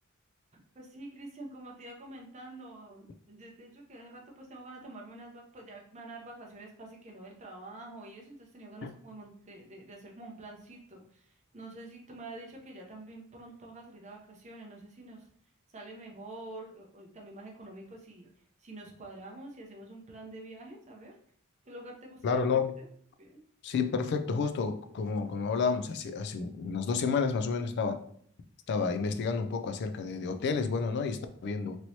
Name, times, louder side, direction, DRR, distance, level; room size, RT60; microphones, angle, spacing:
voice 1, 0.7-15.3 15.7-18.3 18.6-21.2 21.7-22.4 22.8-22.9 23.2-23.4, right 2 dB, 35° right, 0 dB, 0.6 m, -47 dB
voice 2, 22.2-22.7 23.6-28.0 28.7-31.8, left 5 dB, 55° left, 8 dB, 0.3 m, -30 dB
3.0 x 2.9 x 2.7 m, 0.62 s
head